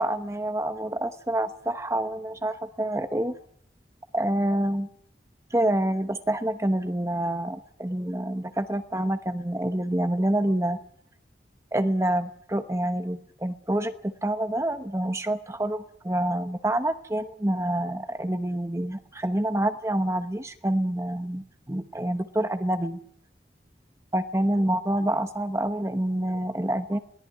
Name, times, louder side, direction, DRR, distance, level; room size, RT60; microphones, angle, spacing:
voice 1, 0.0-3.4 4.1-4.9 5.5-10.8 11.7-23.0 24.1-27.0, right 1 dB, 15° right, 9 dB, 1.0 m, -27 dB
22.5 x 18.0 x 9.3 m, 0.69 s
head